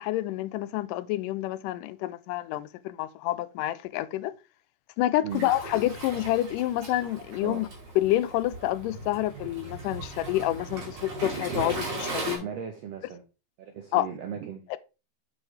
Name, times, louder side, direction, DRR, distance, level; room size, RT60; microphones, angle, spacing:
voice 1, 0.0-4.3 5.0-7.7 8.0-12.5 13.9-14.1 14.7-14.8, left 15 dB, 85° left, 2.2 m, -28 dB
Waves surf, 5.3-12.4, right 2 dB, 55° right, 3.6 m, -37 dB
voice 2, 12.4-13.2 13.6-14.7, right 8 dB, 75° right, 1.5 m, -37 dB
7.1 x 6.3 x 3.2 m
omnidirectional pair, 3.7 m